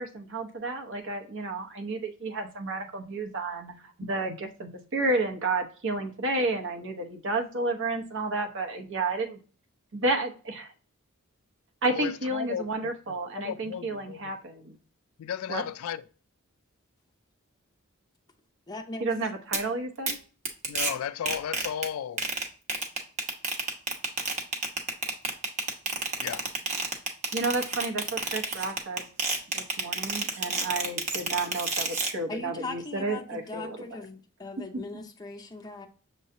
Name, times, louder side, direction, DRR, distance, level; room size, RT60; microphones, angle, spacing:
voice 1, 0.0-9.4 9.9-10.7 11.8-14.7 15.5-15.6 19.0-20.2 27.3-29.1 29.5-33.8 34.7-34.8, right 2 dB, 60° right, 0.9 m, -31 dB
voice 2, 11.9-14.3 15.2-16.0 20.6-22.3 26.2-26.5, left 8 dB, 75° left, 0.3 m, -35 dB
voice 3, 18.7-19.1 32.3-35.9, left 3 dB, 20° left, 0.5 m, -39 dB
sound 1, 19.5-19.6 20.1-20.2 20.4-20.9 21.3-21.9 22.2-32.1, right 3 dB, 35° right, 0.9 m, -29 dB
6.5 x 3.1 x 2.6 m
head